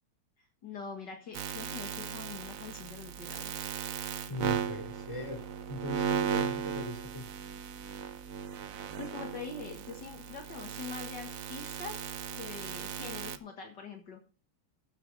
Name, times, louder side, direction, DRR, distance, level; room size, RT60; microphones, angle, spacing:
voice 1, 0.6-3.5 8.7-12.0 12.3-14.2, left 5 dB, 55° left, 3 dB, 2.2 m, -44 dB
sound 1, 1.3-13.4, right 7 dB, 55° right, 0.9 m, -37 dB
voice 2, 4.3-7.3, left 1 dB, 15° left, 2 dB, 3.0 m, -40 dB
15.5 x 8.2 x 4.0 m, 0.37 s
omnidirectional pair, 2.3 m